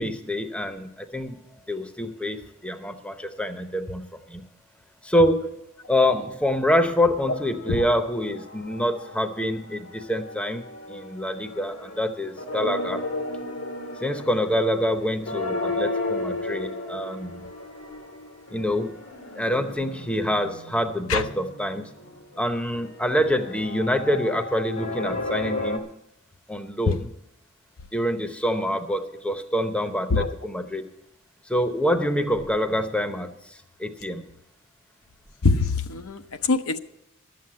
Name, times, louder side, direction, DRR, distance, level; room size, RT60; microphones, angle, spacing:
voice 1, 0.0-1.4 1.7-4.4 5.0-5.6 5.9-13.0 14.0-17.5 18.5-18.9 19.4-21.9 22.4-25.8 26.5-27.1 27.9-30.9 31.5-34.3, left 1 dB, 5° left, 7 dB, 0.8 m, -26 dB
sound 1, 7.2-9.4 9.7-25.8, left 2 dB, 85° left, 1.9 m, -34 dB
voice 2, 35.4-36.8, left 4 dB, 70° left, 8 dB, 0.7 m, -23 dB
12.5 x 7.7 x 8.6 m, 0.82 s
head